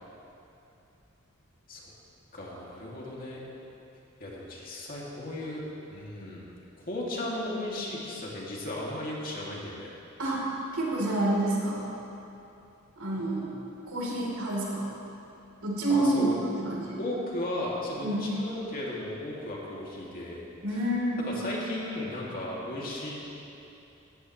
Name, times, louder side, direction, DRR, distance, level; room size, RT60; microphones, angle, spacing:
voice 1, 2.3-3.4 4.2-5.6 5.9-6.5 6.8-9.9 15.9-16.4 17.0-20.5 21.2-23.2, left 1 dB, 45° left, -4 dB, 2.6 m, -35 dB
voice 2, 10.7-11.8 13.0-13.6 13.9-14.9 15.6-16.3 16.6-17.0 18.0-18.3 20.6-21.2, right 1 dB, 80° right, -4 dB, 3.8 m, -28 dB
19.0 x 14.0 x 3.3 m, 2.8 s
head